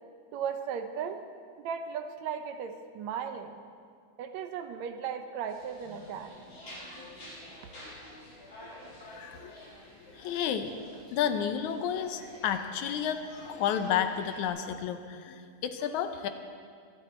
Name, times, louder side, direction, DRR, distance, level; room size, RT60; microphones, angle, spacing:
voice 1, 0.3-1.2 1.6-3.6 4.2-6.4, right 7 dB, 75° right, 8 dB, 2.0 m, -36 dB
sound 1, 5.5-14.5, left 1 dB, 40° left, 6.2 m, -50 dB
sound 2, 5.8-6.2 6.9-7.1 7.8-7.9 8.6-8.7 9.3-9.4 10.0-10.1 10.7-10.8 11.4-11.5 12.1-12.2 12.8-12.9, left 1 dB, 25° left, 3.9 m, -55 dB
voice 2, 9.0-9.7 10.1-10.7 11.1-16.3, left 8 dB, 80° left, 8 dB, 2.2 m, -31 dB
23.5 x 12.5 x 4.3 m, 2.2 s
omnidirectional pair, 3.4 m